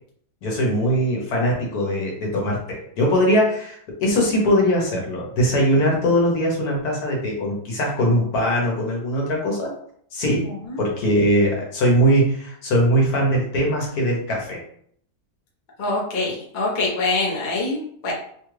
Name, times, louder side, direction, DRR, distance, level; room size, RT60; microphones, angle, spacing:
voice 1, 0.4-9.7 10.1-14.6, equal, 75° left, -1 dB, 1.4 m, -21 dB
voice 2, 15.8-18.1, left 2 dB, 40° left, -3 dB, 0.8 m, -24 dB
3.2 x 2.3 x 3.1 m, 0.64 s
omnidirectional pair, 1.7 m